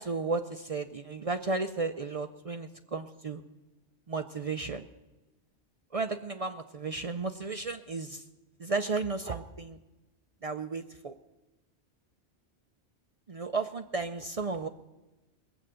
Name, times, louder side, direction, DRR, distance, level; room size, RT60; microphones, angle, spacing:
voice 1, 0.0-3.4 4.1-4.8 5.9-8.2 8.6-9.8 10.4-11.1 13.3-14.7, right 3 dB, 45° right, 9 dB, 0.5 m, -34 dB
20.5 x 7.9 x 7.6 m, 1.1 s
omnidirectional pair, 1.1 m